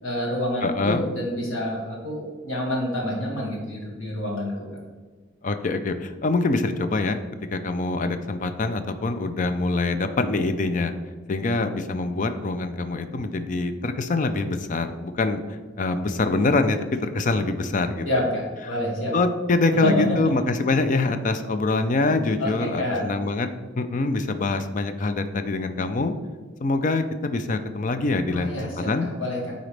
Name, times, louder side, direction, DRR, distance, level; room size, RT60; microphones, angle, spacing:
voice 1, 0.0-4.7 18.1-19.1 19.8-20.2 22.4-23.1 28.3-29.5, left 1 dB, 90° left, -3 dB, 2.0 m, -27 dB
voice 2, 0.6-1.0 5.4-7.2 7.5-10.9 11.3-18.2 18.7-18.8 19.1-23.5 23.8-26.1 26.6-29.1, left 3 dB, 40° left, 9 dB, 0.4 m, -25 dB
9.0 x 3.9 x 3.3 m, 1.4 s
head